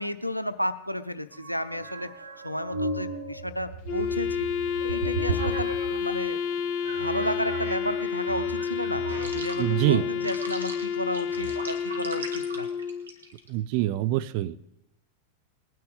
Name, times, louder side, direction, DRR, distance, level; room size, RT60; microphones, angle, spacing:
voice 1, 0.0-2.1 2.4-4.5 4.8-6.4 7.0-9.1 9.3-12.7, equal, 90° left, 12 dB, 0.6 m, -32 dB
sound 1, 1.3-6.3 6.8-13.5, right 3 dB, 75° right, 1.4 m, -36 dB
Wind instrument woodwind instrument, 3.9-13.1, left 7 dB, 45° left, 0.9 m, -30 dB
voice 2, 9.6-10.1 13.5-14.7, right 15 dB, 45° right, 13 dB, 0.5 m, -25 dB
20.0 x 9.5 x 4.0 m, 0.91 s
figure-of-eight pair, 90°, 0 cm